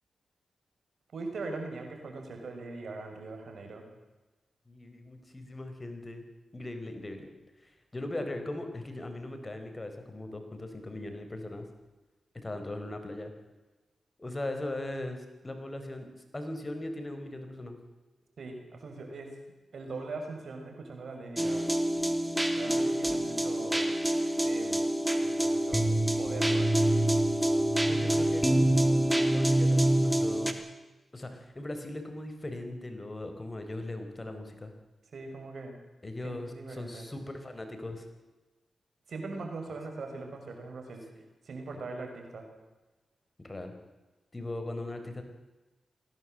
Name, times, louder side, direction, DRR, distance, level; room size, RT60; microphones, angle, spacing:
voice 1, 1.1-3.9 18.4-19.3 19.7-21.7 22.5-23.9 24.4-24.9 25.2-25.9 26.2-27.1 35.1-35.8 36.2-37.1 39.1-41.0 41.4-42.5, right 3 dB, 70° right, 4 dB, 5.5 m, -41 dB
voice 2, 4.7-6.2 6.5-7.3 7.6-11.7 12.3-13.3 14.2-17.8 27.9-30.5 31.1-34.7 36.0-38.0 41.7-41.8 43.4-43.7 44.3-45.2, left 1 dB, 30° left, 6 dB, 4.8 m, -39 dB
sound 1, 21.4-30.5, right 1 dB, 10° right, 3.1 m, -26 dB
21.5 x 17.0 x 7.8 m, 1.1 s
supercardioid pair, 45°, 0 cm